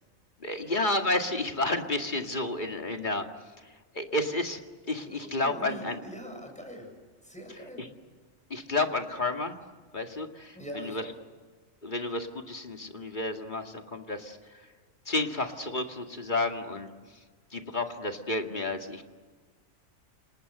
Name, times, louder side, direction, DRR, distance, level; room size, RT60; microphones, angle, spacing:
voice 1, 0.4-3.3 3.9-4.6 4.9-6.0 7.8-7.9 8.5-9.6 9.9-11.0 11.8-14.6 15.1-16.9 17.5-19.0, left 2 dB, 35° left, 4 dB, 2.2 m, -31 dB
voice 2, 5.0-6.9 7.2-7.9 10.5-11.1, right 1 dB, 5° left, 2 dB, 7.5 m, -42 dB
29.5 x 27.0 x 6.8 m, 1.4 s
omnidirectional pair, 1.4 m